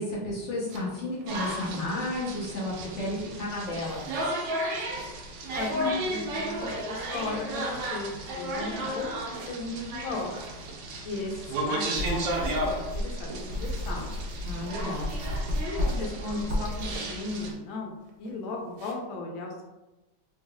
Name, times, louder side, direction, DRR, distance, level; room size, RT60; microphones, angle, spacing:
voice 1, 0.0-4.3 14.4-15.1, left 1 dB, 55° left, -5 dB, 0.8 m, -32 dB
sound 1, 0.7-2.7 2.9-3.4 3.7-4.4 4.7-7.8 8.1-8.5 8.8-9.9 10.2-10.8 11.1-12.5 12.9-15.1 15.4-15.5 15.8-16.4 16.9-17.6 18.0-18.9, right 3 dB, 85° right, 1.4 m, -48 dB
sound 2, 1.3-17.5, right 1 dB, 70° right, 1.2 m, -34 dB
voice 2, 5.5-10.3 11.0-14.1 15.6-19.6, left 3 dB, 85° left, 0 dB, 1.5 m, -36 dB
sound 3, 11.9-17.0, left 1 dB, 40° right, 0.8 m, -32 dB
3.4 x 3.3 x 2.2 m, 1.0 s
omnidirectional pair, 2.2 m